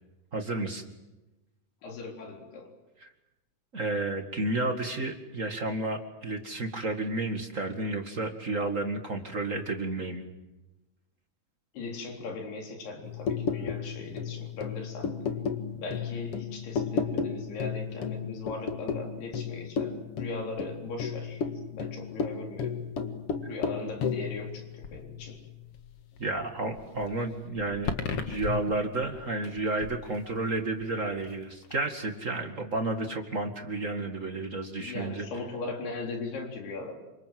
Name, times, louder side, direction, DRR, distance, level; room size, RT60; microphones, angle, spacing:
voice 1, 0.3-0.8 3.0-3.1 3.7-10.2 26.2-35.2, right 2 dB, 35° right, 5 dB, 1.2 m, -31 dB
voice 2, 1.8-2.7 11.7-15.1 15.7-22.8 23.4-25.4 34.7-37.0, left 3 dB, 75° left, 2 dB, 5.9 m, -39 dB
sound 1, 13.0-26.4 26.8-30.1 30.5-30.8, left 6 dB, 50° left, 2.0 m, -34 dB
28.5 x 26.0 x 7.7 m, 1.0 s
omnidirectional pair, 4.7 m